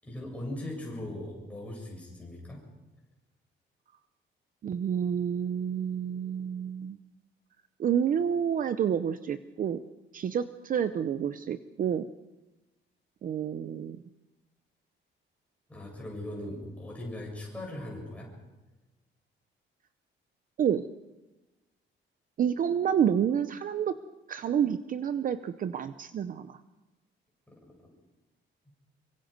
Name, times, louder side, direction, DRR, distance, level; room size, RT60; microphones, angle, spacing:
voice 1, 0.0-2.6 15.7-18.3 27.5-27.6, left 1 dB, 5° left, -3 dB, 7.6 m, -39 dB
voice 2, 4.6-7.0 7.8-9.8 10.1-12.1 13.2-14.0 20.6-20.9 22.4-24.0 24.3-26.6, right 8 dB, 45° right, 12 dB, 0.7 m, -29 dB
26.5 x 24.0 x 5.3 m, 1.1 s
cardioid pair, 180°, 20 cm